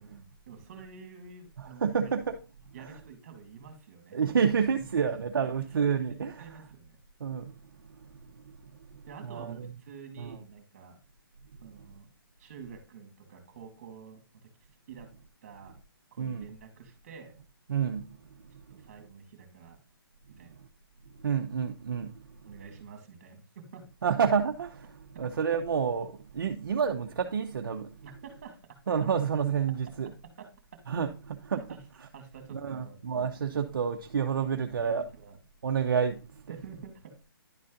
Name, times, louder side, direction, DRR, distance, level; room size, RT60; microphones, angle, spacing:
voice 1, 0.0-2.2 2.7-4.6 5.4-5.5 6.4-7.0 9.1-11.0 11.6-12.1 12.4-14.2 14.9-15.1 15.4-15.7 16.1-17.4 18.7-19.8 20.3-20.6 22.4-23.8 28.0-28.6 30.4-30.5 31.5-31.8 32.1-33.0 34.8-35.4 36.5-37.2, right 6 dB, 35° right, 2.3 m, -48 dB
voice 2, 1.6-2.4 4.1-6.5 7.2-7.5 8.4-8.6 8.9-9.0 9.3-9.7 10.2-10.4 16.2-16.5 17.7-18.1 18.8-18.9 21.2-22.1 24.0-24.9 25.2-27.9 28.9-30.1 30.9-31.6 32.6-35.0 35.6-36.6, right 7 dB, 60° right, 0.8 m, -29 dB
11.0 x 4.1 x 3.8 m
hypercardioid pair, 165°, 12 cm